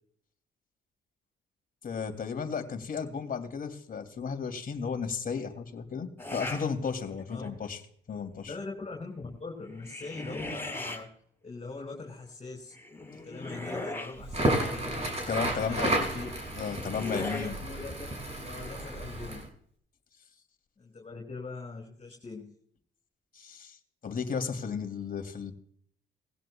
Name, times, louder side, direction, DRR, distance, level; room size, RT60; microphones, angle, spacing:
voice 1, 1.8-7.8 8.1-8.5 15.3-16.1 16.6-17.6 23.3-23.8 24.0-25.5, left 6 dB, 45° left, 6 dB, 2.8 m, -34 dB
sound 1, 6.2-6.7 7.2-7.6 9.7-11.0 12.7-14.2 16.2-17.5, left 2 dB, 10° left, 6.5 m, -38 dB
voice 2, 8.5-11.1 11.4-12.7 13.2-16.3 17.1-18.1 18.4-19.4 20.8-22.5, left 3 dB, 30° left, 0 dB, 5.9 m, -42 dB
Crackle, 14.2-19.5, right 1 dB, 30° right, 5.9 m, -32 dB
20.0 x 16.0 x 2.3 m, 0.62 s
cardioid pair, 90°, 20 cm